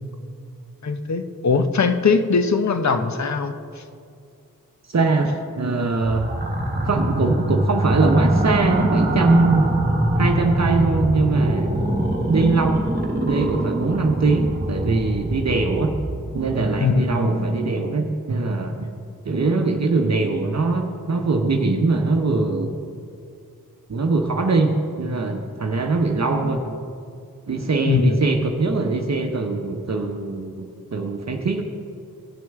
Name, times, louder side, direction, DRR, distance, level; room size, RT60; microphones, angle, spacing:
voice 1, 0.8-3.8 16.8-17.1 27.8-28.2, left 4 dB, 50° left, 9 dB, 0.8 m, -20 dB
voice 2, 4.9-6.3 6.8-9.8 10.2-11.7 12.3-12.8 13.2-16.0 16.3-18.9 19.2-22.7 23.9-26.8 27.5-31.6, right 3 dB, 45° right, 3 dB, 0.9 m, -22 dB
sound 1, 6.1-16.6, right 1 dB, 25° right, 1.3 m, -23 dB
17.0 x 6.1 x 3.6 m, 2.3 s
cardioid pair, 40°, 37 cm